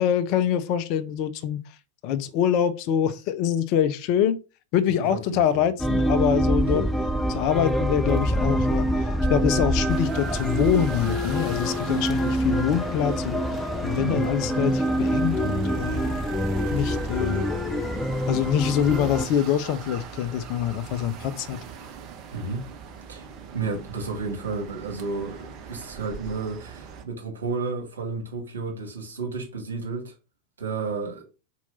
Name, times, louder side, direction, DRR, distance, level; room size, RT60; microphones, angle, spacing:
voice 1, 0.0-1.6 2.0-4.4 4.7-6.9 7.3-8.9 9.3-13.4 13.8-16.1 16.7-17.5 18.3-21.6, left 9 dB, 45° left, 0.6 m, -25 dB
voice 2, 5.1-5.6 6.7-6.9 14.0-14.2 22.3-22.6 23.1-23.3 23.5-30.1 30.6-31.2, right 4 dB, 70° right, 2.6 m, -32 dB
sound 1, 5.8-19.3, equal, 5° left, 0.7 m, -25 dB
sound 2, 9.9-27.0, right 6 dB, 35° right, 1.1 m, -41 dB
4.7 x 4.5 x 5.5 m
figure-of-eight pair, 90°, 0 cm